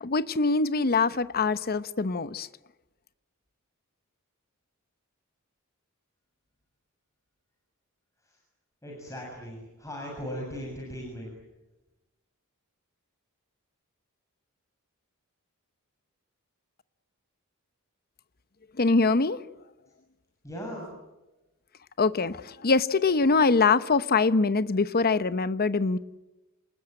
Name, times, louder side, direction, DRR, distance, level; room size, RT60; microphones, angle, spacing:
voice 1, 0.0-2.5 18.8-19.4 22.0-26.0, left 4 dB, 45° left, 14 dB, 0.9 m, -23 dB
voice 2, 8.8-11.3 20.4-20.9, equal, 15° left, -2 dB, 7.0 m, -38 dB
28.0 x 20.0 x 9.0 m, 1.1 s
head